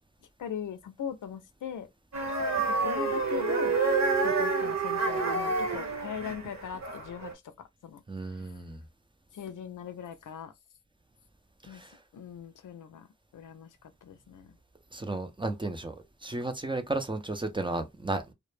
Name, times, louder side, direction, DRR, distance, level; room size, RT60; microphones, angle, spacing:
voice 1, 0.4-1.9 2.6-3.8 4.2-7.3 7.6-8.5 9.3-10.5 11.6-11.8 12.1-13.1 13.3-13.7 14.0-14.6, left 8 dB, 85° left, 0.5 m, -40 dB
sound 1, 2.1-7.3, right 3 dB, 65° right, 1.1 m, -28 dB
voice 2, 8.1-8.8 11.7-11.9 14.9-18.2, right 2 dB, 15° right, 0.5 m, -33 dB
2.1 x 2.1 x 3.1 m
cardioid pair, 65°, 30 cm